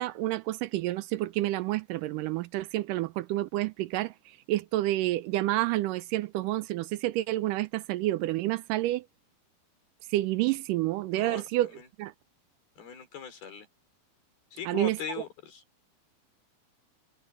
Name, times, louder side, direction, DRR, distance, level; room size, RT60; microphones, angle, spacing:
voice 1, 0.0-9.1 10.1-11.7 12.0-12.1 14.7-15.0, right 16 dB, 80° right, 2.0 m, -29 dB
voice 2, 11.1-11.4 11.7-11.8 12.8-13.7 14.5-15.6, left 7 dB, 85° left, 6.4 m, -40 dB
omnidirectional pair, 4.3 m